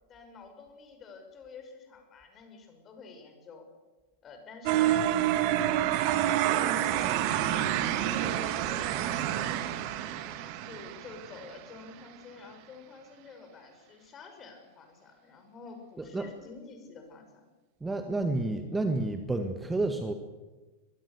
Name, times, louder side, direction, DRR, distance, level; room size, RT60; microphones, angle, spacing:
voice 1, 0.1-3.7 4.2-5.2 5.4-5.9 6.4-7.8 8.2-9.5 10.0-17.4, left 4 dB, 25° left, 5 dB, 6.0 m, -49 dB
sound 1, 4.7-11.6, right 12 dB, 45° right, 1.7 m, -28 dB
voice 2, 16.0-16.3 17.8-20.1, right 2 dB, 10° right, 7 dB, 1.7 m, -30 dB
23.5 x 22.0 x 6.9 m, 1.2 s
figure-of-eight pair, 90°, 0 cm